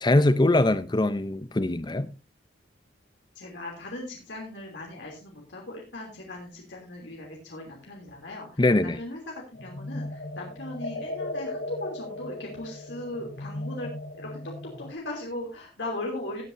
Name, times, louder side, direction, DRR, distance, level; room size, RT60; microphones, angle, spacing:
voice 1, 0.0-2.1 8.6-9.0, left 2 dB, 25° left, 0.6 m, -22 dB
voice 2, 3.3-13.9 14.2-14.4 14.8-16.4, left 1 dB, 85° left, 3.1 m, -38 dB
sound 1, 9.5-14.9, left 1 dB, 60° left, 1.2 m, -37 dB
17.0 x 8.8 x 2.7 m
head